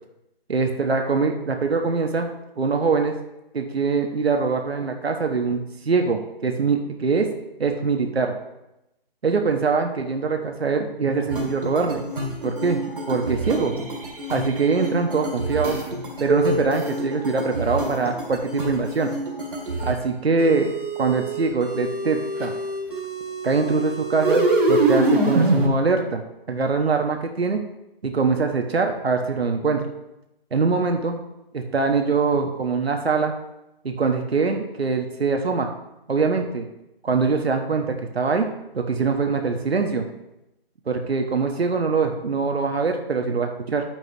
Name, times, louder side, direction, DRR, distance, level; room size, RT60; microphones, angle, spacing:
voice 1, 0.5-2.3 2.6-3.1 3.5-5.6 5.8-7.3 7.6-8.3 9.2-12.0 12.4-12.8 13.1-13.7 14.3-15.8 16.2-19.1 19.8-20.7 21.0-22.5 23.4-27.6 28.0-29.9 30.5-31.2 31.5-33.3 33.8-35.7 36.1-36.7 37.0-38.5 38.7-40.1 40.9-43.8, right 4 dB, 85° right, 4 dB, 1.2 m, -23 dB
sound 1, 11.3-20.0 20.4-25.7, right 2 dB, 60° right, 2.1 m, -25 dB
9.6 x 8.9 x 2.9 m, 0.89 s
hypercardioid pair, 180°, 30 cm